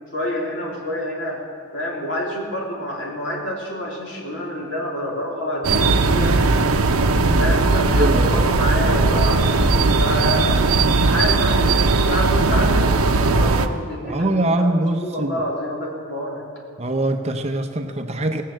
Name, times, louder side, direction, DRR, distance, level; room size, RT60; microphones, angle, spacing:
voice 1, 0.1-1.4 1.7-6.4 7.4-10.6 10.9-16.4, equal, 55° left, -3 dB, 3.1 m, -28 dB
sound 1, 5.6-13.7, right 3 dB, 90° right, 0.8 m, -18 dB
voice 2, 8.0-8.4 14.1-15.3 16.8-18.4, right 1 dB, 30° right, 6 dB, 0.6 m, -22 dB
18.5 x 7.4 x 7.7 m, 2.4 s
head